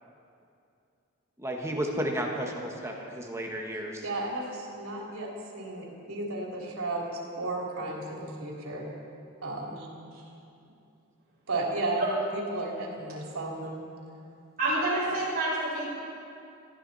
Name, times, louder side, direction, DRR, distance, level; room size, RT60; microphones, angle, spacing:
voice 1, 1.4-4.1, right 1 dB, 15° right, 0 dB, 1.6 m, -33 dB
voice 2, 4.0-5.3 5.5-8.9 9.4-9.9 11.5-13.8, right 2 dB, 90° right, -2 dB, 3.3 m, -33 dB
voice 3, 14.6-15.9, right 2 dB, 40° right, -11 dB, 4.9 m, -28 dB
20.5 x 15.0 x 4.2 m, 2.5 s
head